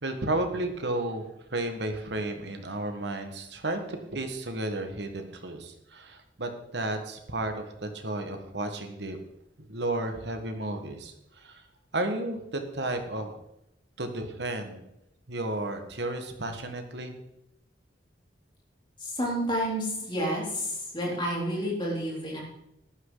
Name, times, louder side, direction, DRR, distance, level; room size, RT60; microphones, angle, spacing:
voice 1, 0.0-9.2 9.7-11.6 11.9-13.3 14.0-14.9 15.3-17.1, right 2 dB, 65° right, 6 dB, 1.7 m, -33 dB
voice 2, 19.0-22.4, equal, 25° left, -3 dB, 3.8 m, -30 dB
14.0 x 11.5 x 4.0 m, 0.83 s
head